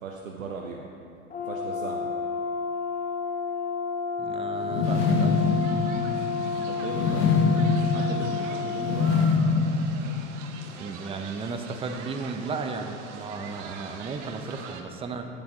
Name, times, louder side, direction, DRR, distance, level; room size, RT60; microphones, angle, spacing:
voice 1, 0.0-0.8 1.5-2.1 6.7-9.1, right 4 dB, 90° right, 0 dB, 0.8 m, -38 dB
Brass instrument, 1.3-9.0, left 5 dB, 20° left, 1.0 m, -31 dB
voice 2, 4.2-5.5 10.8-15.3, right 4 dB, 15° right, 6 dB, 0.6 m, -34 dB
sound 1, 4.6-10.7, left 4 dB, 50° left, 0.9 m, -25 dB
sound 2, 4.8-14.8, right 6 dB, 65° right, 0.9 m, -43 dB
9.5 x 7.0 x 3.8 m, 2.6 s
hypercardioid pair, 95°, 39 cm